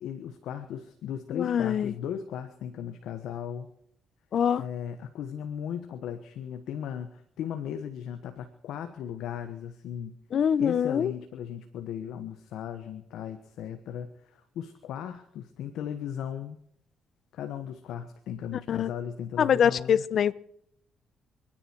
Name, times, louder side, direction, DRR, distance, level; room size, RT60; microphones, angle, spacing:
voice 1, 0.0-3.7 4.6-10.1 10.6-16.6 17.3-20.0, left 9 dB, 80° left, 1.3 m, -37 dB
voice 2, 1.3-1.9 4.3-4.6 10.3-11.1 18.7-18.9 19.4-20.3, left 8 dB, 60° left, 0.7 m, -24 dB
30.0 x 10.5 x 4.6 m
cardioid pair, 90°, 0 cm